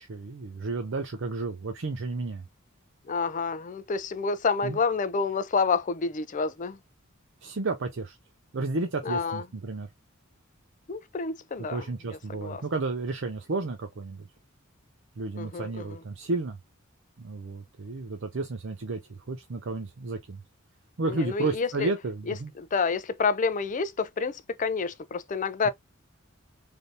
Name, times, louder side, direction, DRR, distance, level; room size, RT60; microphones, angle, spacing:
voice 1, 0.0-2.4 4.6-4.8 7.4-8.2 8.5-9.9 11.6-14.3 15.2-16.6 17.2-20.4 21.0-22.5, right 3 dB, 65° right, 0.6 m, -32 dB
voice 2, 3.1-6.8 9.1-9.4 10.9-12.6 15.4-16.0 21.1-21.9 22.3-25.7, left 4 dB, 40° left, 0.4 m, -29 dB
3.4 x 2.7 x 2.6 m
head